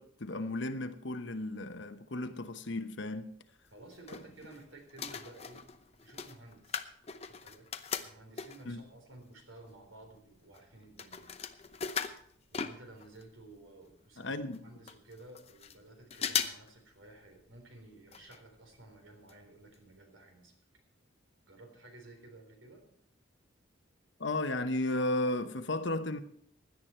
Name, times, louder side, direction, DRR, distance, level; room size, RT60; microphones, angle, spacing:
voice 1, 0.0-3.3 8.7-8.8 14.2-14.6 24.2-26.2, left 2 dB, 65° left, 1.0 m, -34 dB
sound 1, 3.7-4.6 4.9-8.8 9.4-9.5 9.7-13.3 13.6-13.7 13.9-14.0 14.5-14.6 14.9-15.8 16.1-16.7 17.0-17.1 18.1-18.4 18.7-18.8 19.3-19.4 19.7-19.8, left 7 dB, 30° left, 0.7 m, -38 dB
voice 2, 3.7-5.7 6.0-6.8 7.2-7.7 8.0-11.2 12.5-14.4 14.6-20.5 21.5-22.8, right 2 dB, 85° right, 3.9 m, -54 dB
17.0 x 11.0 x 4.5 m
head